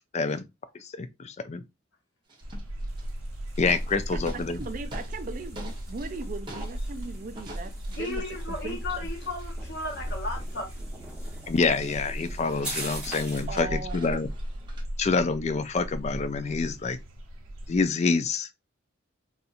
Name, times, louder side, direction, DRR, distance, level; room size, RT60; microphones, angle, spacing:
voice 1, 0.1-0.4 0.7-1.6 3.6-4.6 11.5-14.3 15.0-17.0 17.7-18.5, left 4 dB, 35° left, 0.3 m, -27 dB
sound 1, 2.3-3.3 3.6-5.2 5.6-7.1 7.4-10.9 11.3-11.4 11.7-14.8, right 1 dB, 25° right, 0.9 m, -47 dB
sound 2, 2.4-17.9, equal, 90° right, 1.1 m, -37 dB
sound 3, 2.9-13.6, right 1 dB, 5° right, 1.2 m, -44 dB
voice 2, 3.9-9.1 13.5-14.2, right 3 dB, 40° right, 0.4 m, -39 dB
voice 3, 8.0-10.7, left 2 dB, 55° left, 1.0 m, -35 dB
4.1 x 2.4 x 2.5 m
head